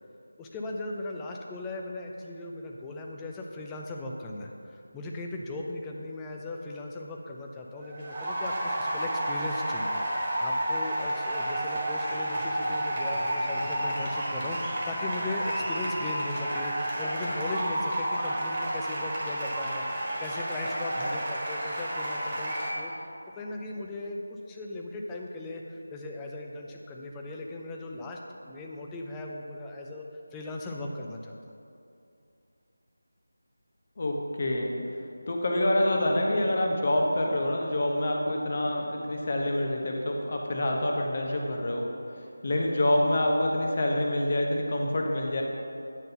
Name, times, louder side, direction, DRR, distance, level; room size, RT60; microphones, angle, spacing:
voice 1, 0.4-22.9 23.3-30.1 30.3-31.6, left 2 dB, 10° left, 0 dB, 0.5 m, -38 dB
sound 1, 7.7-22.7, right 1 dB, 25° right, 1.6 m, -31 dB
voice 2, 34.0-34.7 35.3-41.9 42.4-45.4, left 1 dB, 40° left, 0 dB, 1.0 m, -26 dB
9.1 x 3.9 x 5.6 m, 2.6 s
figure-of-eight pair, 165°, 0 cm